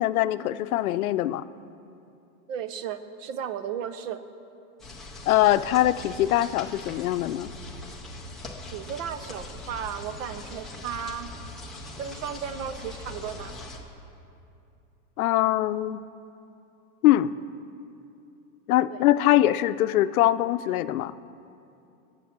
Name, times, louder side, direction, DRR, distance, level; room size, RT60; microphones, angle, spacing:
voice 1, 0.0-1.4 5.3-7.5 15.2-16.0 17.0-17.4 18.7-21.1, left 14 dB, 90° left, 13 dB, 0.6 m, -22 dB
voice 2, 2.5-4.2 8.7-11.3 12.0-13.5 18.9-19.0, right 8 dB, 65° right, 11 dB, 0.9 m, -34 dB
sound 1, 4.8-13.8, left 2 dB, ahead, 0.3 m, -41 dB
19.5 x 7.1 x 6.0 m, 2.7 s
supercardioid pair, 155°, 42 cm